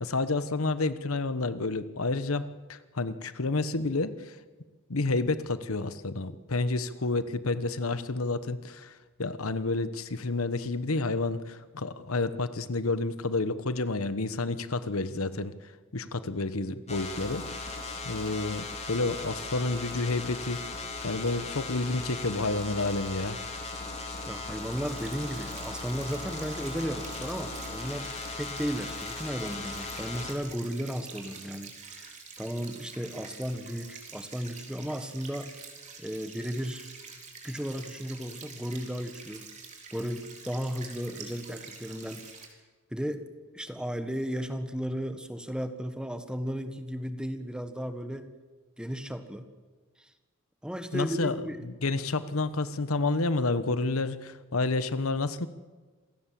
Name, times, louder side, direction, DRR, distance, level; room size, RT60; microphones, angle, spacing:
voice 1, 0.0-4.4 4.9-8.9 9.2-15.5 15.9-17.4 18.0-20.6 21.0-23.4 50.9-51.4 51.6-55.5, left 3 dB, 85° left, 13 dB, 1.1 m, -30 dB
sound 1, 16.9-30.3, left 2 dB, 30° left, 3.5 m, -38 dB
voice 2, 24.3-35.5 36.0-36.9 37.4-39.5 39.9-42.3 42.9-43.2 43.5-48.3 48.8-49.5 50.6-51.6, equal, 5° right, 9 dB, 1.4 m, -35 dB
sound 2, 24.6-42.5, right 5 dB, 35° right, 3.9 m, -47 dB
27.0 x 17.0 x 7.6 m, 1.4 s
head